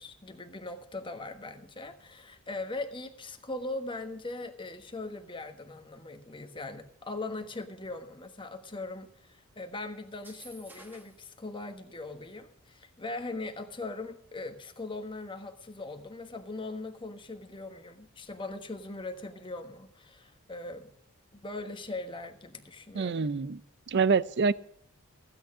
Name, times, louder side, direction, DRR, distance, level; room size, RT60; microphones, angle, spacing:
voice 1, 0.0-20.9 21.4-23.3, left 2 dB, 20° left, 7 dB, 1.3 m, -40 dB
sound 1, 10.1-11.3, right 1 dB, 10° right, 1.3 m, -52 dB
voice 2, 22.9-23.6 23.9-24.5, right 5 dB, 50° right, 18 dB, 0.5 m, -26 dB
15.5 x 8.9 x 6.2 m, 0.66 s
head